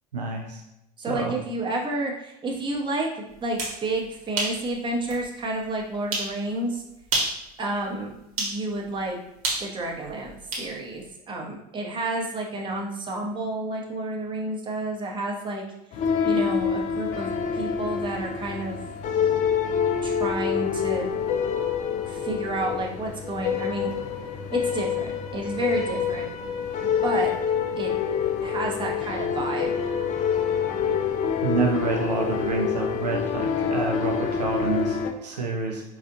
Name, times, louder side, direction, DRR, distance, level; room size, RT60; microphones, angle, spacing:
voice 1, 0.1-0.6 1.1-1.4 31.4-35.8, right 4 dB, 85° right, 0 dB, 0.5 m, -28 dB
voice 2, 1.0-6.8 7.6-9.2 9.6-15.6 16.2-18.8 20.0-21.1 22.0-23.9 24.5-26.3 27.0-27.3 27.8-27.9 28.4-29.9, right 2 dB, 25° right, -1 dB, 0.8 m, -30 dB
sound 1, 3.4-3.8 4.4-4.6 5.1-5.2 6.1-6.3 7.0-7.4 8.4-8.6 9.4-10.7, right 2 dB, 60° right, 1.1 m, -27 dB
sound 2, 15.9-35.1, left 7 dB, 40° left, 0.4 m, -26 dB
4.3 x 2.4 x 2.7 m, 0.86 s
figure-of-eight pair, 70°, 20 cm